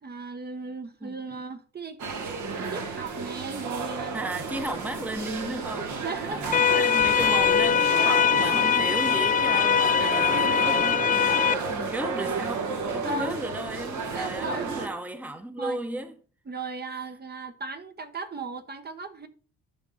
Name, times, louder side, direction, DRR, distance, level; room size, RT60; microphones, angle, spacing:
voice 1, 0.0-2.0 2.6-4.2 5.8-6.4 6.7-6.9 10.0-10.5 11.2-11.9 13.0-13.4 14.1-14.9 15.6-15.8 16.5-19.3, right 3 dB, 35° right, 1.0 m, -37 dB
voice 2, 1.0-1.4 4.1-5.9 6.2-16.1, right 1 dB, 5° right, 0.9 m, -34 dB
sound 1, 2.0-14.9, right 4 dB, 70° right, 2.1 m, -32 dB
sound 2, 6.5-11.5, left 7 dB, 30° left, 0.4 m, -22 dB
11.0 x 4.4 x 5.6 m
cardioid pair, 90°, 30 cm